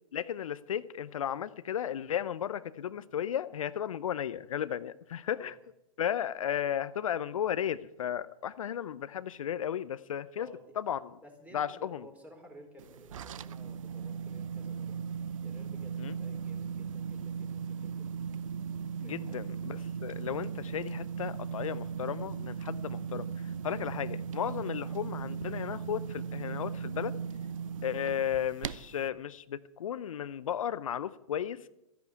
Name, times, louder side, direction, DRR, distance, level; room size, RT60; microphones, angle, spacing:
voice 1, 0.1-5.5 6.0-10.5 10.8-11.1 11.5-12.0 16.0-16.2 19.0-27.1 27.8-31.6, left 9 dB, 70° left, 15 dB, 0.6 m, -34 dB
voice 2, 10.4-10.8 11.2-15.0 15.4-18.1 19.0-19.7 27.6-27.8, equal, 10° right, 3 dB, 4.2 m, -54 dB
sound 1, 12.8-29.1, right 6 dB, 70° right, 0.7 m, -38 dB
13.5 x 10.5 x 9.3 m, 0.90 s
hypercardioid pair, 110°, 18 cm